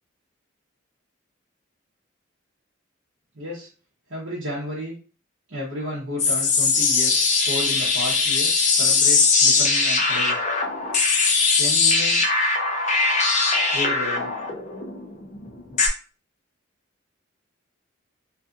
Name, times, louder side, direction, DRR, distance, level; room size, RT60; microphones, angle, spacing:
voice 1, 3.3-3.7 4.1-5.0 5.5-10.4 11.6-12.3 13.7-14.3, left 1 dB, 65° right, -8 dB, 0.9 m, -32 dB
sound 1, 6.2-15.9, left 4 dB, 35° left, 0.5 m, -20 dB
2.6 x 2.5 x 2.4 m, 0.37 s
head